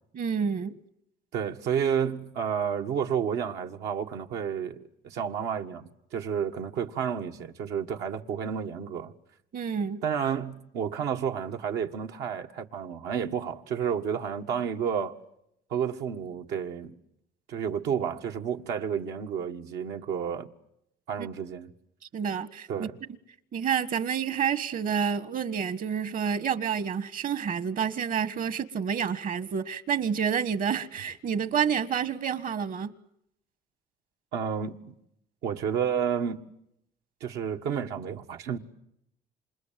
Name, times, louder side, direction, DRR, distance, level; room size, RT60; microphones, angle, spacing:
voice 1, 0.1-0.8 9.5-10.0 21.2-21.3 22.1-22.9 23.5-32.9, right 7 dB, 55° right, 1.6 m, -29 dB
voice 2, 1.3-9.1 10.0-15.2 15.7-16.9 17.5-20.5 21.1-21.7 22.7-23.0 34.3-34.8 35.4-36.4 37.2-38.6, right 7 dB, 80° right, 1.7 m, -31 dB
28.5 x 26.5 x 7.6 m
cardioid pair, 110°, 17 cm